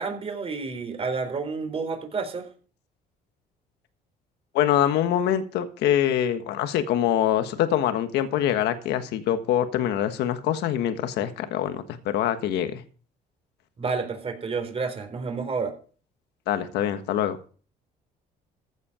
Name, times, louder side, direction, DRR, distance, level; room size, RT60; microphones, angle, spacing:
voice 1, 0.0-2.5 13.8-15.7, right 4 dB, 35° right, 6 dB, 4.0 m, -30 dB
voice 2, 4.5-12.8 16.5-17.4, left 10 dB, 80° left, 9 dB, 1.4 m, -24 dB
15.0 x 8.3 x 5.0 m, 0.40 s
cardioid pair, 110°, 17 cm